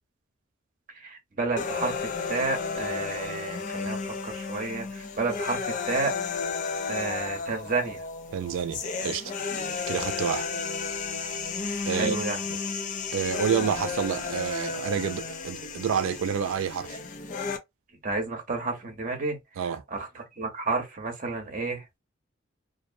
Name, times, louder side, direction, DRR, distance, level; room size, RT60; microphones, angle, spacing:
voice 1, 0.9-6.2 6.9-8.0 11.9-12.4 18.0-19.4 19.9-21.8, right 3 dB, 40° right, 0.8 m, -31 dB
sound 1, 1.6-17.6, left 5 dB, 40° left, 0.4 m, -33 dB
voice 2, 8.3-9.3 9.9-10.5 11.9-12.2 12.5-12.6 13.1-17.0 19.6-19.8, right 7 dB, 80° right, 0.3 m, -28 dB
2.5 x 2.0 x 2.6 m
head